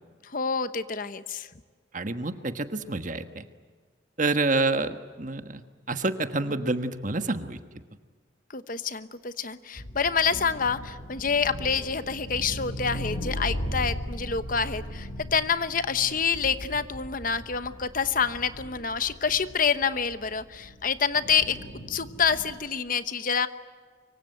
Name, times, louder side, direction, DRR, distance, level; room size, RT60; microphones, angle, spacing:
voice 1, 0.3-1.5 8.5-21.6 21.9-23.5, left 6 dB, 45° left, 12 dB, 1.0 m, -27 dB
voice 2, 1.9-3.4 4.2-5.6 5.9-7.6, right 2 dB, 40° right, 9 dB, 1.4 m, -28 dB
sound 1, 9.8-22.5, equal, 65° left, 7.3 m, -38 dB
24.5 x 24.0 x 9.3 m, 1.5 s
head